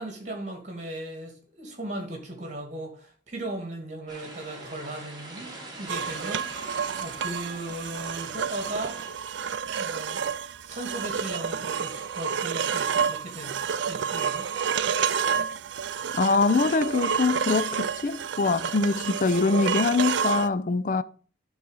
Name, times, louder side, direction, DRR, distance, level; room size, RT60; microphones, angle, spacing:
voice 1, 0.0-9.0 9.7-10.3 10.7-14.5, right 1 dB, 40° right, 2.5 m, -37 dB
sound 1, 4.1-9.1, right 2 dB, 20° right, 2.4 m, -43 dB
sound 2, 5.9-20.5, right 7 dB, 70° right, 0.4 m, -29 dB
voice 2, 16.2-21.0, left 3 dB, 45° left, 0.4 m, -24 dB
11.0 x 4.0 x 5.6 m
head